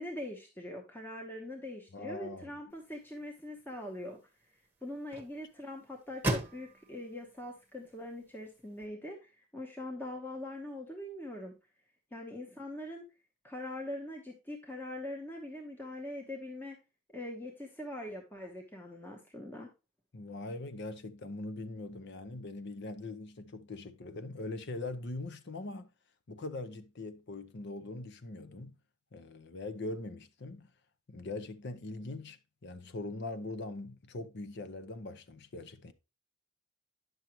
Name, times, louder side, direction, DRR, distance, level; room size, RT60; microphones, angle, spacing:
voice 1, 0.0-4.2 4.8-11.6 12.1-13.0 13.4-16.8 17.1-19.7, left 1 dB, 10° left, 0.9 m, -42 dB
voice 2, 1.9-2.6 20.1-25.9 26.3-28.8 29.1-30.7 31.1-35.9, left 2 dB, 55° left, 0.7 m, -42 dB
sound 1, 2.7-8.9, right 1 dB, 10° right, 1.1 m, -42 dB
9.5 x 6.4 x 3.0 m
head